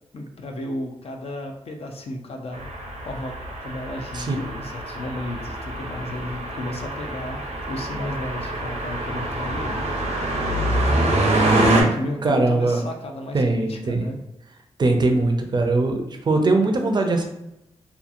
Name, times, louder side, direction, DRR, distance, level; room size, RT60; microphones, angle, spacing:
voice 1, 0.1-2.6 3.0-3.3 3.6-9.9 10.5-14.2, left 1 dB, 60° left, 3 dB, 0.4 m, -33 dB
sound 1, 2.5-11.8, right 1 dB, 85° right, 0.6 m, -25 dB
voice 2, 12.2-12.8 13.3-14.1 14.8-17.2, right 2 dB, 40° right, 4 dB, 0.4 m, -21 dB
2.8 x 2.3 x 2.5 m, 0.86 s
wide cardioid pair, 95°, 11 cm